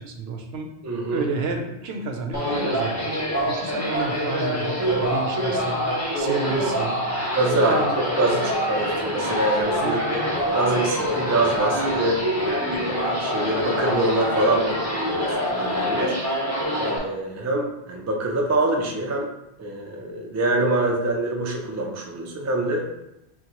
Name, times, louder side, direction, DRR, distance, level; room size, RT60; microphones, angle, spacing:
voice 1, 0.0-0.7 1.1-5.8 6.1-7.0 7.7-8.0 9.8-10.2, right 3 dB, 70° right, 4 dB, 0.8 m, -31 dB
voice 2, 0.8-1.2 7.3-7.8 8.1-10.2 10.5-12.2 12.7-16.1 16.8-19.3 19.6-22.9, right 2 dB, 25° right, 0 dB, 0.3 m, -25 dB
sound 1, 2.3-17.0, equal, 15° left, 1.0 m, -25 dB
6.2 x 2.2 x 2.9 m, 0.89 s
omnidirectional pair, 1.1 m